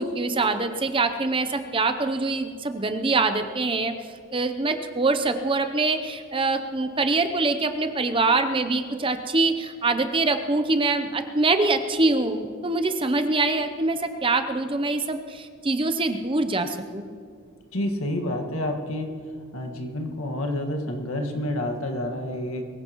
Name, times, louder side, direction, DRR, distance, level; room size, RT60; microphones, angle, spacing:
voice 1, 0.0-3.9 4.3-17.1, right 3 dB, 25° right, 8 dB, 0.6 m, -24 dB
voice 2, 17.7-19.1 19.5-22.7, left 1 dB, 70° left, 3 dB, 1.7 m, -29 dB
23.0 x 15.5 x 3.0 m, 2.2 s
head